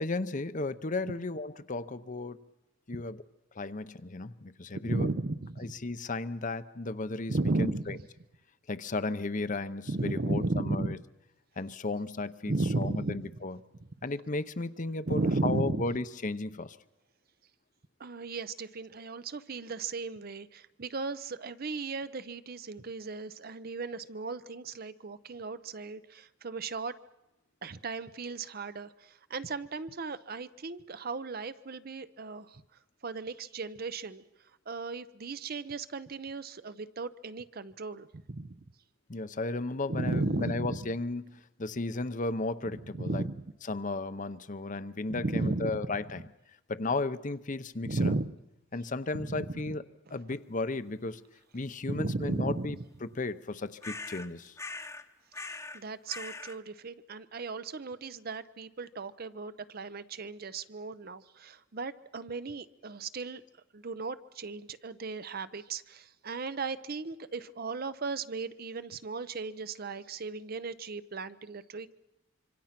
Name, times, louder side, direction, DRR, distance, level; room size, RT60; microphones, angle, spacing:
voice 1, 0.0-2.4 2.9-3.2 3.5-5.1 5.6-8.0 8.7-11.0 11.6-13.6 14.0-16.8 39.1-43.3 43.6-46.3 46.7-48.2 48.7-49.8 50.1-51.2 51.5-54.5, left 3 dB, 40° left, 12 dB, 0.8 m, -34 dB
voice 2, 4.8-5.7 7.3-8.0 9.9-11.0 12.5-13.4 15.1-15.9 18.0-26.9 27.6-32.6 33.0-34.2 34.7-38.6 39.9-40.9 42.9-43.4 45.1-46.0 47.8-48.3 49.1-49.8 51.9-52.8 55.7-63.4 63.7-71.9, right 3 dB, 50° right, 13 dB, 0.7 m, -35 dB
sound 1, 53.8-54.3 54.6-55.1 55.3-55.8 56.1-56.6, left 3 dB, 15° left, 1.0 m, -41 dB
26.0 x 25.0 x 5.9 m, 0.95 s
head